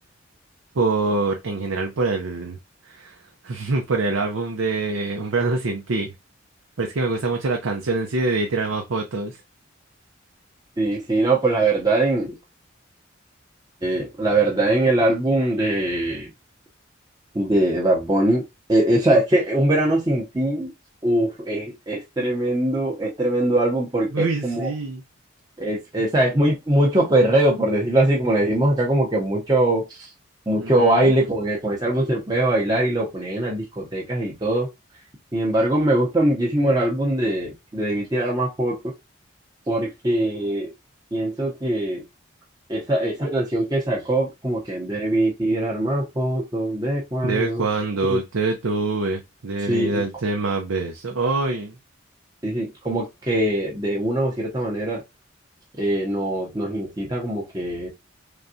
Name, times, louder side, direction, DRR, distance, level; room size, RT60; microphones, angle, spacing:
voice 1, 0.8-2.6 2.9-3.2 3.4-6.1 6.8-9.4 24.1-25.0 30.6-31.1 47.2-51.7, right 3 dB, 90° right, 0.7 m, -25 dB
voice 2, 10.8-12.3 13.8-16.3 17.3-18.4 18.7-20.7 21.0-24.7 25.6-30.1 30.5-34.7 35.3-38.9 39.7-40.7 41.1-42.0 42.7-47.7 48.1-48.2 49.7-50.0 52.4-55.0 55.8-57.9, right 1 dB, 20° right, 0.7 m, -22 dB
3.9 x 3.4 x 2.7 m
head